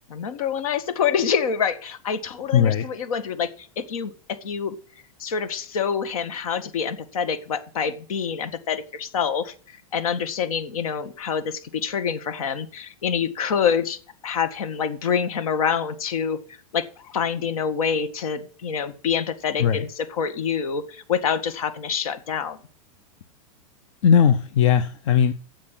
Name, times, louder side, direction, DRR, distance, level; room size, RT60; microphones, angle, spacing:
voice 1, 0.1-4.8 5.2-14.0 14.2-22.6, left 7 dB, 75° left, 1.8 m, -26 dB
voice 2, 2.5-2.8 19.6-19.8 24.0-25.3, left 8 dB, 60° left, 0.9 m, -18 dB
8.7 x 7.7 x 9.1 m
supercardioid pair, 150°, 18 cm